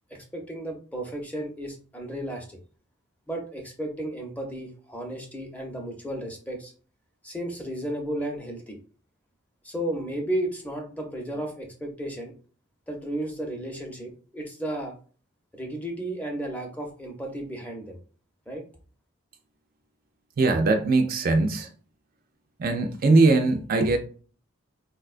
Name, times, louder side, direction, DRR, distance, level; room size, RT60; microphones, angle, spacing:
voice 1, 0.1-2.6 3.3-6.7 7.2-8.8 9.6-12.3 12.9-15.0 15.5-18.0 18.5-18.6, right 1 dB, 5° left, 0.5 m, -33 dB
voice 2, 20.4-21.7 22.6-24.0, right 3 dB, 45° right, 0.3 m, -21 dB
4.2 x 2.2 x 2.4 m
head